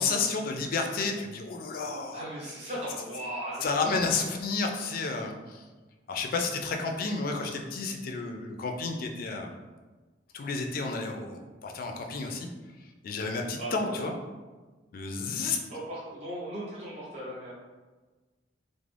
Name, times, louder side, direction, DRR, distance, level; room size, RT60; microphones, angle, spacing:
voice 1, 0.0-2.2 3.6-5.6 6.1-9.5 10.3-12.5 13.0-14.1 14.9-15.6, left 4 dB, 50° left, 3 dB, 0.3 m, -31 dB
voice 2, 2.1-4.1 13.6-14.1 15.7-17.5, right 1 dB, 40° right, -8 dB, 0.7 m, -37 dB
2.4 x 2.0 x 3.2 m, 1.3 s
head